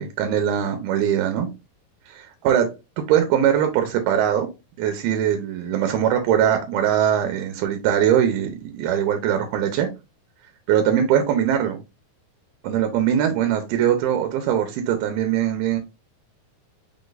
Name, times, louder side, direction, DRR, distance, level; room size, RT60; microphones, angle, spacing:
voice 1, 0.0-1.5 2.1-2.7 3.0-4.5 4.8-9.9 10.7-11.8 12.6-15.8, right 9 dB, 90° right, 2.6 m, -21 dB
5.6 x 3.9 x 2.4 m
omnidirectional pair, 4.3 m